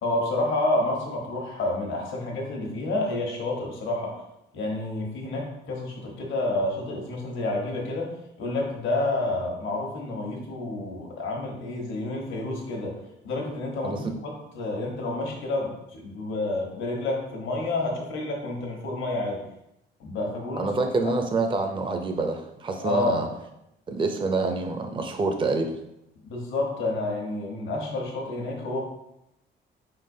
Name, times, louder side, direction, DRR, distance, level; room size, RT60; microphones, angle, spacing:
voice 1, 0.0-4.1 4.5-8.1 8.4-12.9 13.2-19.4 20.0-20.7 21.0-21.1 22.8-23.3 26.3-28.8, left 2 dB, 80° left, -1 dB, 1.1 m, -29 dB
voice 2, 20.5-23.3 23.9-25.7, right 3 dB, 25° right, 4 dB, 0.5 m, -27 dB
4.5 x 3.8 x 2.7 m, 0.84 s
cardioid pair, 90°, 20 cm